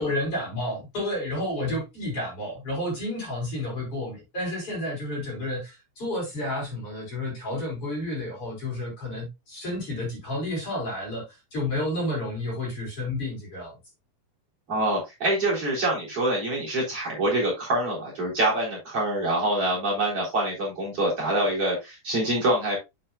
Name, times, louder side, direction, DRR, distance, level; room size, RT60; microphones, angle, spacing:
voice 1, 0.0-13.8, left 1 dB, 35° left, 4.7 m, -31 dB
voice 2, 14.7-22.8, right 1 dB, 35° right, 4.5 m, -25 dB
8.9 x 7.6 x 2.3 m
omnidirectional pair, 4.7 m